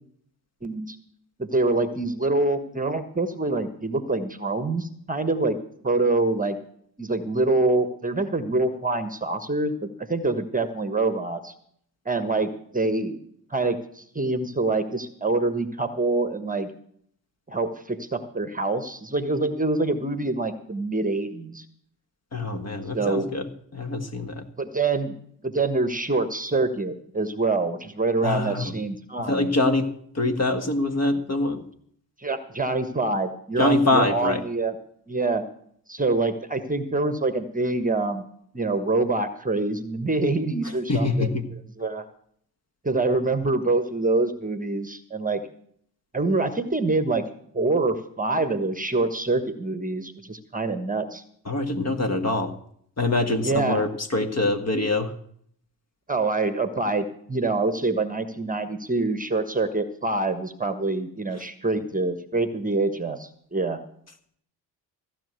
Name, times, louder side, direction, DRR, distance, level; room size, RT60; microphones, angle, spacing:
voice 1, 0.6-1.0 1.4-5.6 5.8-6.6 7.0-11.5 12.0-13.2 13.5-16.7 17.5-21.6 22.9-23.3 24.6-25.2 25.4-29.5 32.2-34.7 35.1-35.4 35.9-38.2 38.5-41.4 41.8-42.0 42.8-45.4 46.1-47.2 47.5-51.2 53.4-53.8 56.1-63.8, right 3 dB, 15° right, 10 dB, 1.3 m, -25 dB
voice 2, 22.3-24.4 28.2-28.7 29.3-31.6 33.6-34.4 40.9-41.4 51.4-52.5 53.0-55.1, left 2 dB, 30° left, 7 dB, 1.7 m, -24 dB
15.5 x 6.2 x 8.1 m, 0.65 s
hypercardioid pair, 50°, 49 cm